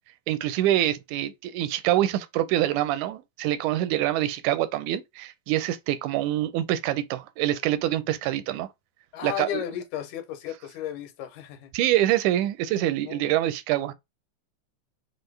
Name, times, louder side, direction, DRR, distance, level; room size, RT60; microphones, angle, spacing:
voice 1, 0.3-8.7 9.2-9.6 11.7-13.9, right 13 dB, 90° right, 2.0 m, -25 dB
voice 2, 9.1-11.7 13.1-13.2, left 11 dB, 90° left, 2.1 m, -34 dB
6.1 x 2.0 x 3.2 m
omnidirectional pair, 3.4 m